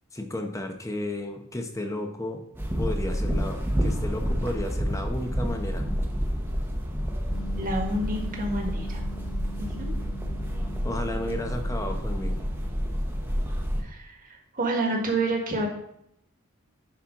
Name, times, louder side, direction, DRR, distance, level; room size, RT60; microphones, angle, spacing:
voice 1, 0.1-2.4 2.8-5.9 10.8-12.6, left 1 dB, 15° left, 4 dB, 0.9 m, -33 dB
sound 1, 2.5-13.8, equal, 10° right, 0.9 m, -29 dB
sound 2, 7.3-13.7, right 1 dB, 85° left, 1.6 m, -43 dB
voice 2, 7.6-9.0 9.8-9.9 13.8-15.7, right 2 dB, 40° right, 1 dB, 1.6 m, -29 dB
10.5 x 4.5 x 3.7 m, 0.74 s
head